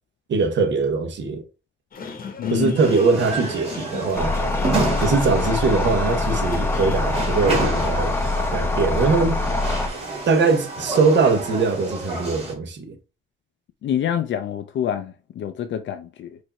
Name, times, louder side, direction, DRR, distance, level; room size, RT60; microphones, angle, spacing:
voice 1, 0.3-1.4 2.5-4.4 5.0-8.1 8.5-9.4 10.3-12.9, right 4 dB, 60° right, 1.0 m, -21 dB
sound 1, 1.9-7.9, left 5 dB, 45° left, 0.9 m, -36 dB
voice 2, 2.4-2.7 13.8-16.4, left 10 dB, 65° left, 0.5 m, -26 dB
sound 2, 2.8-12.5, right 2 dB, 30° right, 2.2 m, -30 dB
sound 3, 4.2-9.9, left 2 dB, 10° left, 0.5 m, -24 dB
4.7 x 2.6 x 4.2 m
wide cardioid pair, 160°, 21 cm